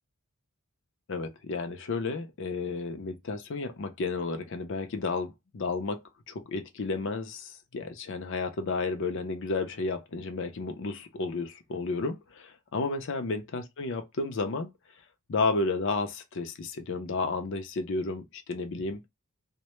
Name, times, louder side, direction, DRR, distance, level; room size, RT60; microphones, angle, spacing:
voice 1, 1.1-14.7 15.3-19.0, left 3 dB, 60° left, 0.5 m, -32 dB
2.1 x 2.1 x 2.9 m
head